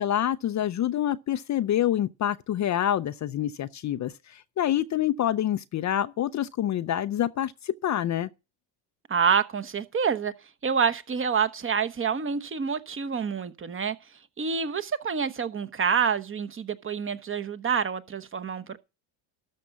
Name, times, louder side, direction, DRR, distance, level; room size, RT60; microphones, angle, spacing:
voice 1, 0.0-8.3, left 11 dB, 35° left, 0.5 m, -27 dB
voice 2, 9.1-10.3 10.6-14.0 14.4-18.8, right 6 dB, 25° right, 1.0 m, -27 dB
13.0 x 5.2 x 7.0 m
supercardioid pair, 85°, 49 cm